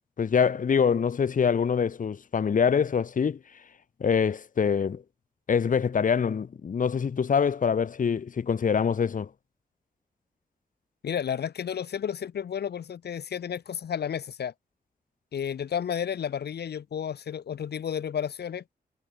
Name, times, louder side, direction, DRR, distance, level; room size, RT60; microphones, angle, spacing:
voice 1, 0.2-3.4 4.0-5.0 5.5-9.3, left 6 dB, 55° left, 1.0 m, -24 dB
voice 2, 11.0-14.5 15.3-18.6, left 8 dB, 85° left, 0.9 m, -32 dB
wide cardioid pair, 150°, 17 cm